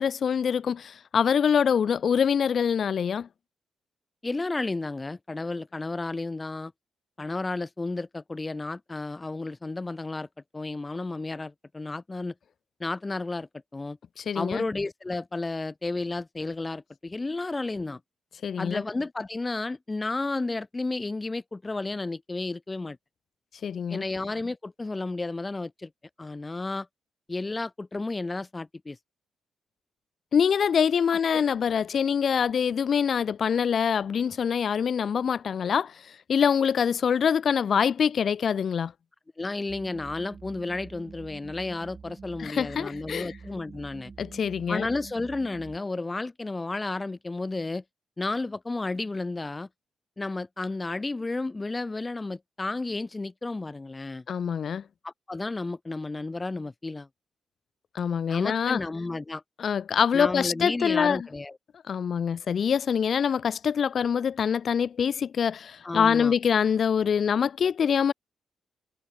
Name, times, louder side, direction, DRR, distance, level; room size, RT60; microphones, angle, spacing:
voice 1, 0.0-3.3 14.2-14.6 18.4-18.8 23.6-24.0 30.3-38.9 42.4-43.3 44.2-44.9 54.3-54.8 57.9-58.8 59.6-61.2 61.9-68.1, left 7 dB, 55° left, 0.8 m, -25 dB
voice 2, 4.2-6.7 7.2-10.3 10.5-12.3 12.8-14.0 14.3-18.0 18.6-23.0 23.9-25.9 26.2-26.9 27.3-29.0 31.3-31.4 39.4-44.1 44.7-47.8 48.2-49.7 50.2-54.2 55.0-57.1 58.3-59.4 60.1-61.6 65.8-66.3, left 2 dB, 20° left, 0.9 m, -32 dB
sound 1, 39.7-45.8, right 5 dB, 35° right, 7.4 m, -46 dB
cardioid pair, 100°, 0 cm